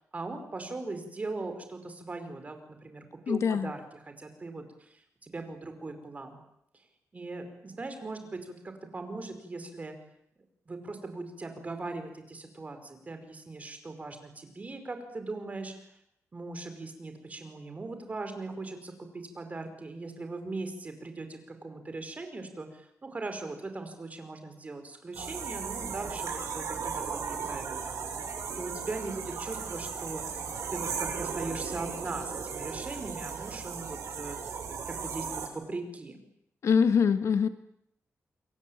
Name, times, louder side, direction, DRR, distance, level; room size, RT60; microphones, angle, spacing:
voice 1, 0.1-6.4 7.1-10.0 10.7-15.7 16.3-27.9 28.6-30.2 30.7-34.4 34.9-36.2, right 3 dB, 30° right, 7 dB, 5.1 m, -39 dB
voice 2, 3.3-3.7 36.6-37.5, left 6 dB, 70° left, 10 dB, 1.7 m, -24 dB
sound 1, 25.1-35.5, right 6 dB, 85° right, 7.3 m, -36 dB
28.0 x 23.0 x 8.9 m, 0.77 s
wide cardioid pair, 150°, 5 cm